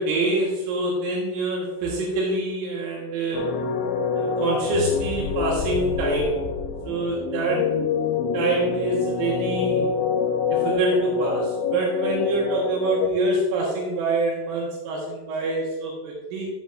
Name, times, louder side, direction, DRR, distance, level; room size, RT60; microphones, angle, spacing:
voice 1, 0.0-3.7 4.1-6.4 6.9-7.8 8.3-9.9 10.5-16.5, right 2 dB, 80° right, -2 dB, 3.8 m, -26 dB
sound 1, 3.3-13.1, left 6 dB, 80° left, 2.8 m, -26 dB
11.0 x 7.3 x 2.6 m, 1.1 s
omnidirectional pair, 6.0 m